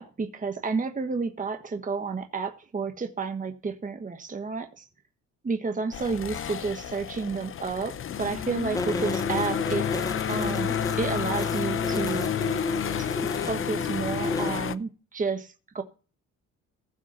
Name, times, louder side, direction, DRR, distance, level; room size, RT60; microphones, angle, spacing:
voice 1, 0.0-4.9 5.4-9.9 10.3-12.3 13.0-13.1 13.4-15.8, right 4 dB, 25° right, 6 dB, 1.4 m, -31 dB
sound 1, 5.9-14.8, left 9 dB, 45° left, 0.7 m, -31 dB
sound 2, 8.7-14.5, left 2 dB, 10° left, 0.9 m, -32 dB
15.5 x 6.1 x 5.7 m, 0.35 s
cardioid pair, 90°, 30 cm